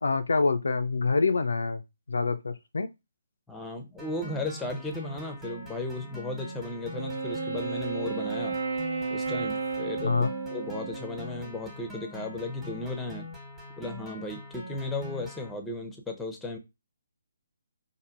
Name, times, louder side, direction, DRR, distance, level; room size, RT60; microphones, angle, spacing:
voice 1, 0.0-1.8 2.1-2.9 10.0-10.3, left 4 dB, 70° left, 0.3 m, -26 dB
voice 2, 3.5-8.6 9.1-13.3 13.8-16.6, left 2 dB, 5° left, 0.6 m, -35 dB
sound 1, 4.0-15.5, left 1 dB, 10° right, 1.2 m, -43 dB
Wind instrument woodwind instrument, 6.9-11.5, right 4 dB, 55° right, 0.8 m, -33 dB
4.4 x 2.6 x 2.4 m
figure-of-eight pair, 140°, 0 cm